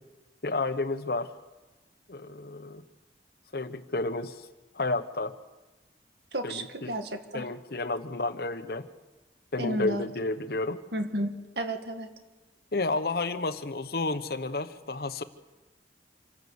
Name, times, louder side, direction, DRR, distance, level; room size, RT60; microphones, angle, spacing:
voice 1, 0.4-1.3 2.1-2.8 3.5-4.5 4.7-5.4 6.4-6.9 7.3-8.9 9.5-10.8 12.7-15.2, left 2 dB, 60° left, 11 dB, 1.0 m, -31 dB
voice 2, 6.3-7.5 9.6-10.1 10.9-12.1, right 1 dB, 70° right, 6 dB, 1.9 m, -32 dB
26.5 x 12.5 x 8.0 m, 1.2 s
head